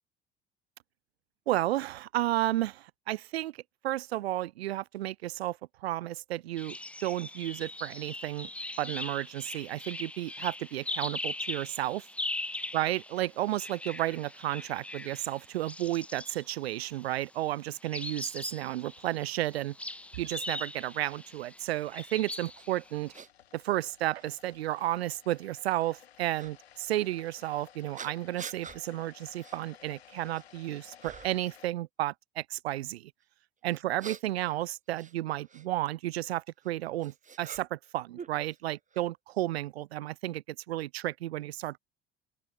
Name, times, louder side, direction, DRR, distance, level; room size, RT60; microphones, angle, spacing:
voice 1, 1.5-3.5 3.8-8.5 8.8-12.0 12.7-19.7 20.2-23.1 23.5-33.1 33.6-41.8, right 15 dB, 75° right, 0.7 m, -32 dB
sound 1, 6.6-17.2 17.8-23.2, left 2 dB, 5° left, 0.5 m, -40 dB
sound 2, 18.7-31.7, left 10 dB, 80° left, 4.3 m, -57 dB
sound 3, 22.6-22.7 23.1-23.3 24.2-24.3 26.3-26.5 28.0-28.8 29.4-29.6 30.0-30.6 31.0-31.5 33.7-35.7 36.6-37.9 38.2-39.0, right 6 dB, 25° right, 1.1 m, -46 dB
open air
figure-of-eight pair, 60°, 31 cm